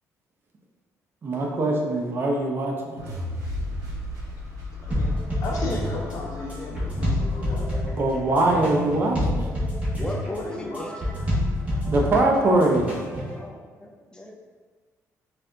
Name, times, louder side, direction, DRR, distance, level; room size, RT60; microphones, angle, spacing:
voice 1, 1.2-2.9 7.8-9.5 11.8-12.8, right 2 dB, 35° right, -1 dB, 0.5 m, -22 dB
sound 1, 3.0-9.1, left 2 dB, 80° right, 0.7 m, -36 dB
sound 2, 4.9-13.4, left 1 dB, 20° right, 1.3 m, -27 dB
voice 2, 5.4-7.7 8.3-8.4 10.3-10.9, left 2 dB, 65° left, -2 dB, 0.7 m, -34 dB
voice 3, 10.0-11.2 13.3-14.4, left 1 dB, 15° left, 0 dB, 0.4 m, -37 dB
4.0 x 2.5 x 2.2 m, 1.4 s
cardioid pair, 95°, 6 cm